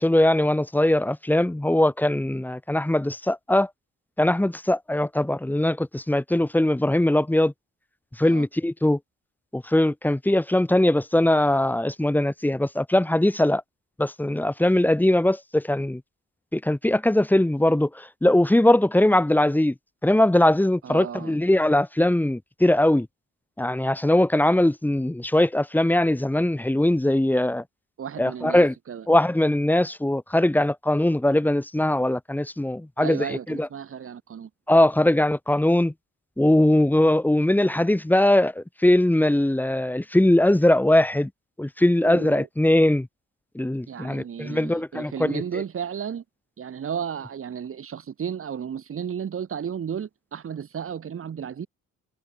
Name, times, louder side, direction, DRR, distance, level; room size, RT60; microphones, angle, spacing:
voice 1, 0.0-3.7 4.2-7.5 8.2-9.0 9.5-13.6 14.0-16.0 16.5-19.7 20.0-23.1 23.6-27.6 28.2-28.7 29.1-33.7 34.7-35.9 36.4-41.3 41.6-43.1 43.5-45.4, left 1 dB, 5° left, 1.1 m, -21 dB
voice 2, 20.8-21.4 28.0-29.1 33.0-34.5 42.0-42.5 43.9-46.2 46.6-51.7, right 8 dB, 45° right, 1.9 m, -33 dB
cardioid pair, 90°, 30 cm